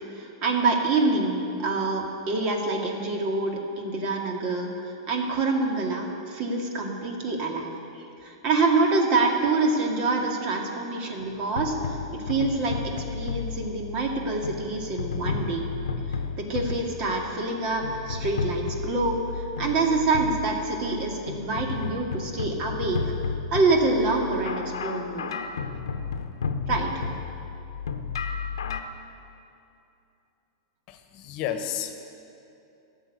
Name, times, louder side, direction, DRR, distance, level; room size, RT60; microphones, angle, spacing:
voice 1, 0.1-7.7 8.2-15.7 16.4-23.0 23.5-25.4 26.7-26.9, right 3 dB, 45° right, 1 dB, 2.1 m, -26 dB
sound 1, 11.2-28.8, left 5 dB, 85° left, 0.8 m, -33 dB
voice 2, 30.9-31.9, left 9 dB, 45° left, 7 dB, 1.1 m, -31 dB
12.5 x 7.4 x 9.5 m, 2.7 s
hypercardioid pair, 115°, 2 cm